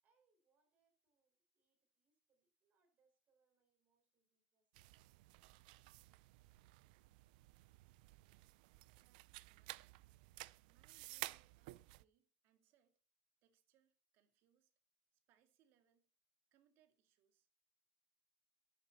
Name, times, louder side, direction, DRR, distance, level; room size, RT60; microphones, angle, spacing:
voice 1, 0.0-5.0, right 5 dB, 35° right, 6 dB, 5.2 m, -84 dB
sound 1, 4.7-12.0, right 21 dB, 75° right, 0.5 m, -54 dB
voice 2, 8.9-10.0 10.6-13.0 13.4-14.7 15.3-16.1 16.5-17.5, right 10 dB, 50° right, 8 dB, 2.5 m, -78 dB
14.0 x 11.0 x 4.2 m, 0.34 s
supercardioid pair, 150°, 5 cm